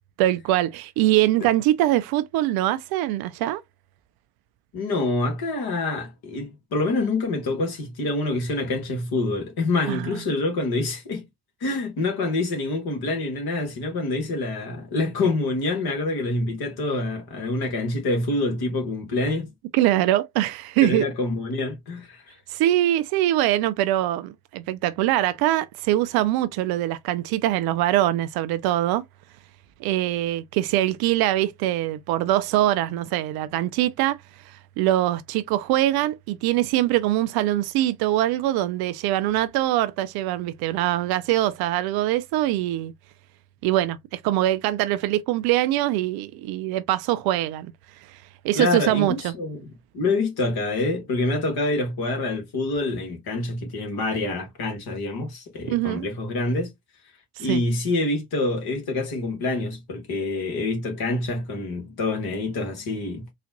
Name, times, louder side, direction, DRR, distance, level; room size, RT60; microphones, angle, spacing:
voice 1, 0.2-3.6 9.9-10.2 19.7-21.1 22.5-29.0 29.8-34.2 34.5-42.9 43.6-47.7 48.1-48.2 48.4-49.3 55.7-56.1 57.4-57.6, right 14 dB, 50° right, 0.5 m, -23 dB
voice 2, 4.7-11.3 11.6-19.5 20.8-22.3 48.5-56.7 57.4-63.3, left 2 dB, 50° left, 1.7 m, -26 dB
3.9 x 2.4 x 2.6 m
figure-of-eight pair, 50°, 49 cm